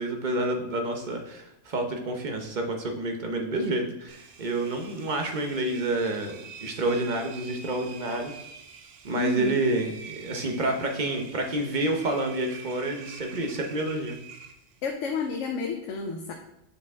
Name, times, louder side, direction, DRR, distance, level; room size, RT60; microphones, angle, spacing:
voice 1, 0.0-8.4 9.0-14.2, right 2 dB, 45° right, 3 dB, 0.9 m, -29 dB
Engine, 4.1-14.9, right 6 dB, 85° right, 1.1 m, -46 dB
voice 2, 9.1-9.6 14.8-16.3, left 4 dB, 90° left, 3 dB, 1.0 m, -30 dB
6.8 x 4.6 x 3.6 m, 0.85 s
omnidirectional pair, 1.2 m